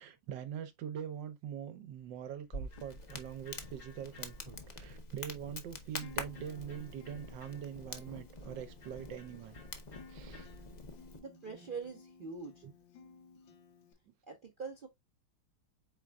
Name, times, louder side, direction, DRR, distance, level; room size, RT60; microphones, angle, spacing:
voice 1, 0.0-9.6 10.1-10.5 12.6-12.7 14.1-14.2, right 9 dB, 75° right, 1.3 m, -43 dB
Electric guitar, 2.0-11.1, left 3 dB, 40° left, 3.2 m, -63 dB
Crackle, 2.5-11.2, left 2 dB, 70° left, 0.4 m, -46 dB
Acoustic guitar, 5.9-13.9, left 5 dB, 85° left, 1.7 m, -57 dB
voice 2, 11.1-12.6 14.3-14.9, right 4 dB, 60° right, 0.5 m, -44 dB
5.2 x 4.2 x 2.3 m
omnidirectional pair, 2.0 m